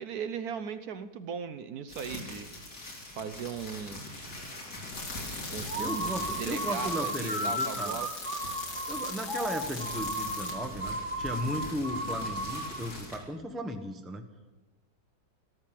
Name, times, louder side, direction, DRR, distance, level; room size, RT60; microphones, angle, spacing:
voice 1, 0.0-2.8 3.1-4.0 5.5-8.1, right 7 dB, 65° right, 11 dB, 1.1 m, -38 dB
sound 1, 1.9-13.2, left 1 dB, 70° left, 4.0 m, -43 dB
sound 2, 4.9-10.5, left 3 dB, 85° left, 3.2 m, -40 dB
sound 3, 5.7-12.9, right 1 dB, 35° right, 1.3 m, -35 dB
voice 2, 5.8-8.0 8.9-14.3, equal, ahead, 6 dB, 0.7 m, -36 dB
14.5 x 13.0 x 7.5 m, 1.2 s
omnidirectional pair, 1.9 m